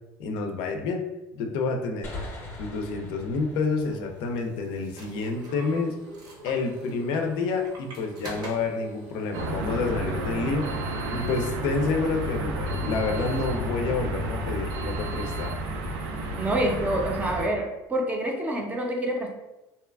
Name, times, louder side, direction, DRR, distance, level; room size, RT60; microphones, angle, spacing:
voice 1, 0.2-1.0 1.3-2.1 2.6-6.0 6.4-10.7 11.1-15.6, left 4 dB, 70° left, 4 dB, 0.4 m, -28 dB
sound 1, 2.0-5.5, left 2 dB, 25° left, 0.7 m, -42 dB
sound 2, 3.6-10.0, right 1 dB, 50° right, 0.7 m, -44 dB
sound 3, 9.3-17.5, right 1 dB, 85° right, 0.4 m, -31 dB
voice 2, 16.4-17.6 17.9-19.3, right 1 dB, 15° right, 1 dB, 0.5 m, -27 dB
2.7 x 2.2 x 2.3 m, 1.0 s
cardioid pair, 120°, 9 cm